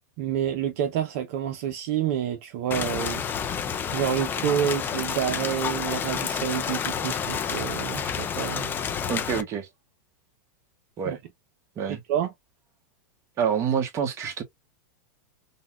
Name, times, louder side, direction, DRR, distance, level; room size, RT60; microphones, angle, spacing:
voice 1, 0.2-8.7 11.0-11.2 11.9-12.3, right 10 dB, 55° right, 0.7 m, -29 dB
Rain, 2.7-9.4, left 7 dB, 20° left, 0.5 m, -29 dB
voice 2, 9.1-9.7 11.0-11.2 11.8-12.0 13.4-14.4, right 7 dB, 30° right, 1.2 m, -27 dB
3.9 x 2.3 x 2.4 m
hypercardioid pair, 130°, 9 cm